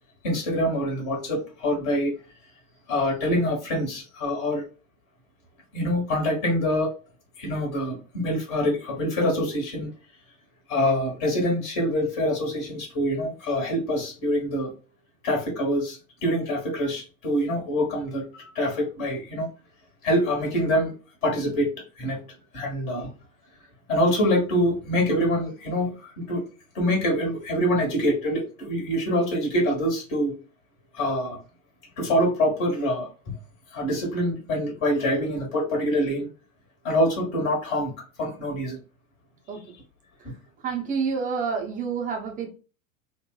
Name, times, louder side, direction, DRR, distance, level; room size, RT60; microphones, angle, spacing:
voice 1, 0.2-2.1 2.9-4.6 5.7-6.9 7.4-9.9 10.7-14.7 15.2-19.5 20.0-20.9 21.2-22.2 22.5-23.1 23.9-26.4 26.7-30.4 30.9-31.4 32.0-33.3 33.7-36.3 36.8-37.9 38.2-38.8 40.2-40.3, equal, 40° left, 0 dB, 1.4 m, -25 dB
voice 2, 40.6-42.5, right 5 dB, 20° right, 2 dB, 0.6 m, -28 dB
3.1 x 2.1 x 2.2 m, 0.34 s
figure-of-eight pair, 85°, 41 cm